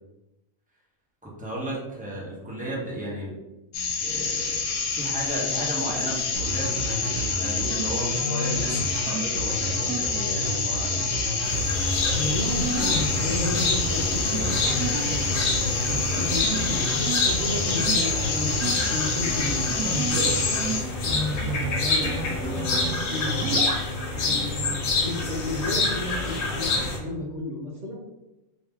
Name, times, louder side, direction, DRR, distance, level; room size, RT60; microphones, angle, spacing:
voice 1, 1.2-3.4 4.0-11.1 24.2-24.6, right 1 dB, 5° right, -7 dB, 0.8 m, -34 dB
sound 1, 3.7-20.8, left 5 dB, 80° left, 1.1 m, -28 dB
sound 2, 6.3-20.7 21.1-21.7 22.0-22.9 23.2-23.8, right 2 dB, 90° right, 1.1 m, -31 dB
sound 3, 11.4-27.0, left 3 dB, 60° left, 0.9 m, -27 dB
voice 2, 12.1-15.5 15.8-20.4 21.0-23.4 24.1-26.7 27.0-28.0, left 1 dB, 50° right, -2 dB, 0.9 m, -32 dB
2.9 x 2.9 x 3.5 m, 0.99 s
omnidirectional pair, 1.5 m